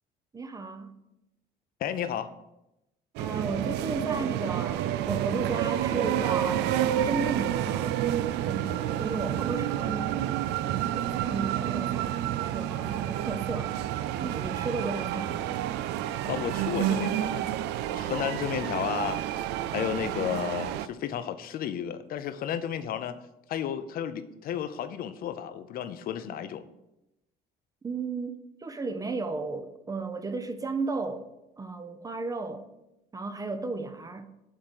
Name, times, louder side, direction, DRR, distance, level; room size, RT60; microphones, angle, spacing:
voice 1, 0.3-0.9 3.2-6.7 7.0-8.0 8.5-10.4 10.7-13.7 14.2-15.6 27.8-28.3 28.6-31.3 31.6-32.7 33.1-34.3, right 3 dB, 20° right, 0.6 m, -34 dB
voice 2, 1.8-2.3 16.2-17.5 18.0-19.2 19.7-23.2 23.5-26.6, left 9 dB, 60° left, 0.6 m, -32 dB
sound 1, 3.2-20.9, right 11 dB, 85° right, 0.4 m, -29 dB
7.4 x 3.8 x 6.4 m
cardioid pair, 110°, 17 cm